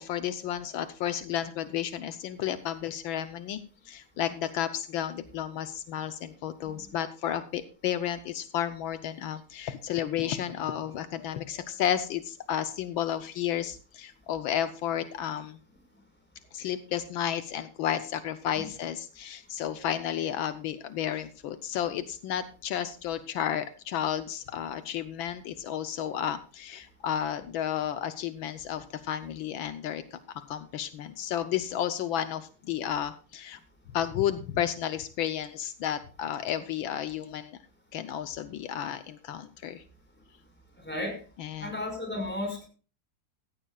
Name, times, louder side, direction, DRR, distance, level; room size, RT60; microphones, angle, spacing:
voice 1, 0.0-15.6 16.5-33.6 33.9-37.6 37.9-39.8 41.4-41.7, left 10 dB, 80° left, 11 dB, 1.6 m, -32 dB
voice 2, 40.8-41.2 41.6-42.7, left 1 dB, 5° left, 3 dB, 5.2 m, -34 dB
16.0 x 15.0 x 2.4 m, 0.37 s
omnidirectional pair, 2.1 m